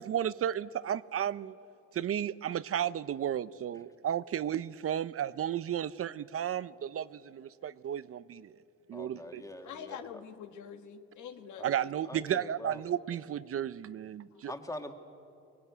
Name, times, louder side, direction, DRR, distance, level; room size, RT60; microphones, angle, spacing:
voice 1, 0.0-1.5 1.9-8.6 8.9-9.4 11.6-14.5, right 10 dB, 50° right, 0.6 m, -33 dB
voice 2, 8.9-10.0 11.6-11.7 12.1-12.8 14.5-14.9, left 1 dB, 10° left, 2.0 m, -43 dB
voice 3, 9.6-11.9, left 8 dB, 90° left, 1.6 m, -45 dB
23.5 x 20.0 x 9.5 m
cardioid pair, 110°, 29 cm